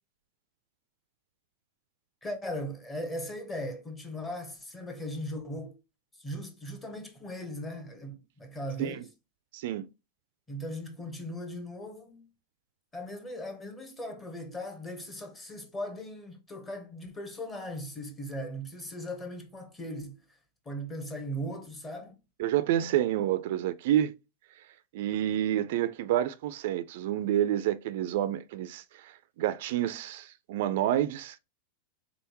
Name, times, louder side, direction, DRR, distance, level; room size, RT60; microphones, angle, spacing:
voice 1, 2.2-5.8 6.2-9.1 10.5-12.3 12.9-20.2 20.6-22.1, equal, 15° left, 1.1 m, -38 dB
voice 2, 9.5-9.9 22.4-24.1 24.9-29.1 29.4-31.4, right 12 dB, 60° right, 0.4 m, -28 dB
3.8 x 3.5 x 2.9 m
supercardioid pair, 140°, 0 cm